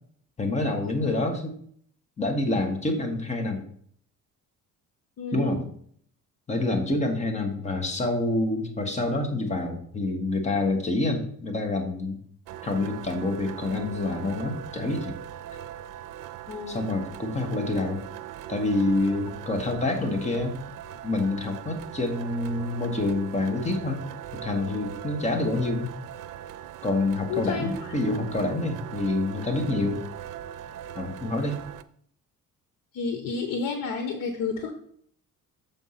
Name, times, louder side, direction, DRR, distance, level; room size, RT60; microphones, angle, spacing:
voice 1, 0.4-1.6 2.2-3.6 5.3-5.6 6.5-12.2 12.6-15.1 16.7-18.0 18.5-20.5 21.0-24.0 24.4-25.9 26.8-30.0 30.9-31.6, left 2 dB, 20° left, 4 dB, 1.3 m, -27 dB
voice 2, 5.2-5.6 16.5-16.9 27.3-27.9 32.9-34.7, left 4 dB, 85° left, 5 dB, 1.0 m, -31 dB
sound 1, 12.5-31.8, right 11 dB, 80° right, 0.6 m, -40 dB
7.1 x 4.5 x 5.7 m, 0.62 s
cardioid pair, 150°, 31 cm